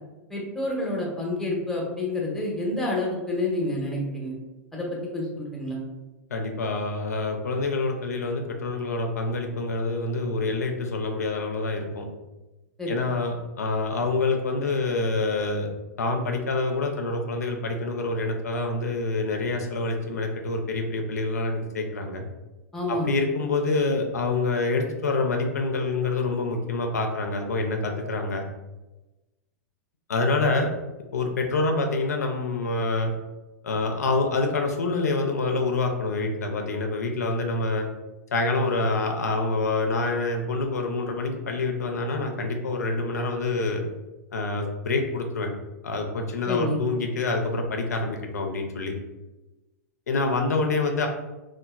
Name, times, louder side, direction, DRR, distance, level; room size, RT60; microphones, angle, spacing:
voice 1, 0.3-4.3 4.7-4.9 5.1-5.8 12.8-12.9 22.7-23.1 46.5-46.8, left 2 dB, 5° left, -2 dB, 0.7 m, -28 dB
voice 2, 6.3-12.1 12.9-15.7 16.0-22.2 22.9-28.4 30.1-30.7 31.1-33.1 33.6-37.9 38.3-43.8 44.3-45.5 45.8-48.9 50.1-51.1, left 3 dB, 80° left, 3 dB, 0.4 m, -26 dB
2.9 x 2.2 x 2.2 m, 1.1 s
hypercardioid pair, 105°, 9 cm